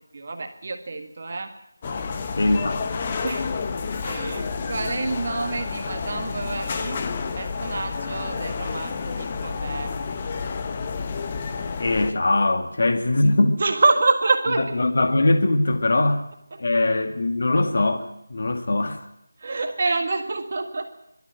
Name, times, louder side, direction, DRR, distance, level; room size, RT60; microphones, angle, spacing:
voice 1, 0.1-1.5 3.2-3.5 4.0-7.0 7.4-9.9 13.6-14.8 16.5-16.6 19.4-20.9, right 3 dB, 40° right, 5 dB, 1.7 m, -26 dB
sound 1, 1.8-12.1, left 5 dB, 20° left, 1.0 m, -30 dB
voice 2, 2.4-2.9 11.8-13.6 14.8-16.2 16.6-19.1, left 2 dB, 50° left, 6 dB, 2.0 m, -21 dB
23.5 x 13.0 x 9.0 m, 0.82 s
figure-of-eight pair, 175°, 0 cm